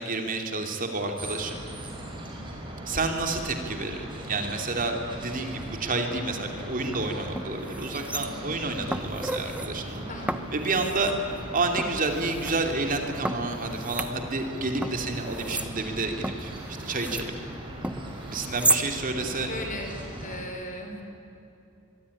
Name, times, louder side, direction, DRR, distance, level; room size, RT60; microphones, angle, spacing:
voice 1, 0.0-1.6 2.9-10.0 10.5-11.1 11.5-17.3 18.2-19.5, right 3 dB, 40° right, 4 dB, 2.9 m, -30 dB
sound 1, 1.2-20.4, right 1 dB, 25° right, 5.4 m, -39 dB
sound 2, 6.8-7.0 7.4-8.6 8.9-9.7 10.3-11.2 11.8-12.6 13.2-14.5 14.8-17.3 17.8-18.9 19.2-19.3, right 2 dB, 5° right, 1.1 m, -32 dB
voice 2, 8.1-8.5 10.1-10.4 19.4-19.9 20.2-21.0, left 1 dB, 40° left, 4 dB, 4.8 m, -37 dB
24.0 x 24.0 x 10.0 m, 2.8 s
head